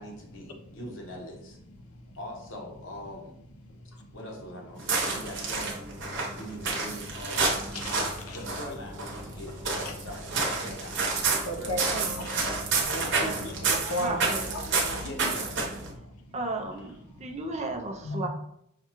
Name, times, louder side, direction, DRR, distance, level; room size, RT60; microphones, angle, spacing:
voice 1, 0.0-1.6 2.1-3.3 4.1-6.0 6.3-7.6 8.3-11.0 11.4-12.0 15.0-15.5 16.8-16.9, equal, 60° left, 0 dB, 0.9 m, -42 dB
sound 1, 4.8-15.9, right 4 dB, 55° right, 0.9 m, -30 dB
voice 2, 7.7-8.4 9.8-9.9 11.4-12.4 12.8-14.2 14.5-15.1 16.0-16.1 18.0-18.3, left 1 dB, 85° left, 4 dB, 0.7 m, -35 dB
voice 3, 13.2-13.7 14.0-14.5 16.3-18.3, right 2 dB, 30° right, 3 dB, 0.4 m, -35 dB
5.7 x 2.3 x 2.9 m, 0.77 s
head